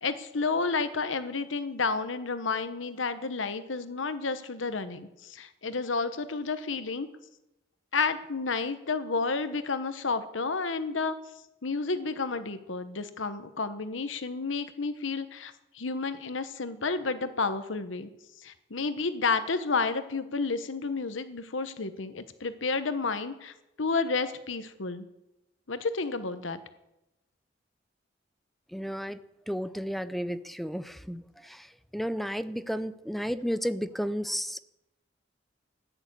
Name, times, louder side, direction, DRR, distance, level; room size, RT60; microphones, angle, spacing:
voice 1, 0.0-7.1 7.9-11.2 11.6-18.1 18.4-25.1 25.7-26.6, left 4 dB, 85° left, 11 dB, 1.1 m, -31 dB
voice 2, 28.7-34.6, equal, ahead, 13 dB, 0.6 m, -33 dB
15.0 x 11.0 x 8.2 m, 0.92 s
head